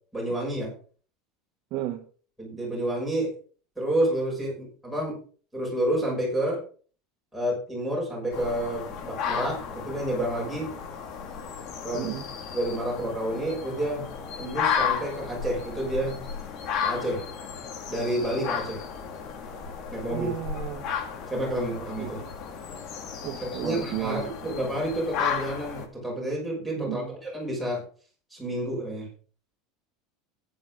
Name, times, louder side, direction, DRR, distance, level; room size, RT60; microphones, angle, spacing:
voice 1, 0.1-0.7 2.4-3.3 3.8-5.1 5.5-6.6 7.3-10.7 11.8-12.1 12.5-14.1 14.4-16.2 16.8-17.2 17.9-18.8 19.9-20.3 21.3-22.2 23.4-27.8 28.3-29.1, right 1 dB, ahead, -3 dB, 6.2 m, -29 dB
voice 2, 1.7-2.0 11.9-12.2 20.1-20.9 22.0-22.3 23.2-24.5 26.8-27.2, right 13 dB, 45° right, 5 dB, 1.1 m, -34 dB
sound 1, 8.3-25.9, left 7 dB, 40° left, 2.1 m, -34 dB
14.0 x 10.0 x 3.8 m, 0.40 s
supercardioid pair, 175°, 0 cm